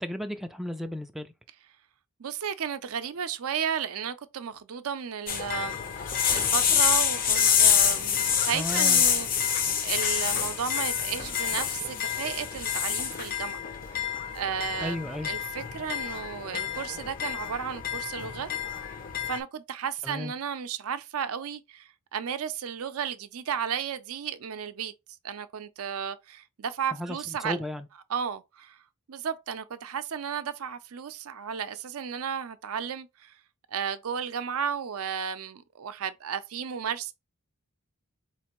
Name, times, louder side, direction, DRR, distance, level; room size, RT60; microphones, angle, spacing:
voice 1, 0.0-1.3 8.5-9.0 14.8-15.3 20.0-20.3 26.9-27.9, left 1 dB, ahead, 0.3 m, -34 dB
voice 2, 2.2-15.0 15.2-18.5 18.9-19.0 19.3-24.9 25.2-27.6 28.1-28.8 29.1-33.4 33.7-37.1, right 7 dB, 80° right, 0.5 m, -34 dB
sound 1, 5.3-19.4, left 8 dB, 40° left, 0.6 m, -27 dB
4.3 x 3.1 x 3.0 m
head